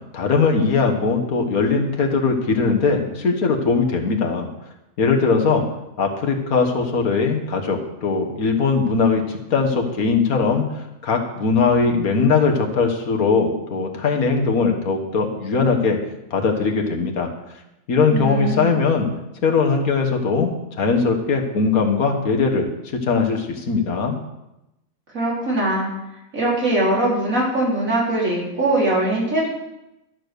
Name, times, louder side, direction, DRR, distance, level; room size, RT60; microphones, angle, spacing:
voice 1, 0.1-4.5 5.0-5.6 6.0-10.6 11.0-16.0 16.3-17.3 17.9-19.1 19.4-24.2, left 4 dB, 80° left, 3 dB, 1.9 m, -20 dB
voice 2, 18.1-18.8 25.1-25.9 26.3-29.5, right 1 dB, 65° right, -5 dB, 4.3 m, -21 dB
13.0 x 6.3 x 6.8 m, 0.91 s
omnidirectional pair, 1.5 m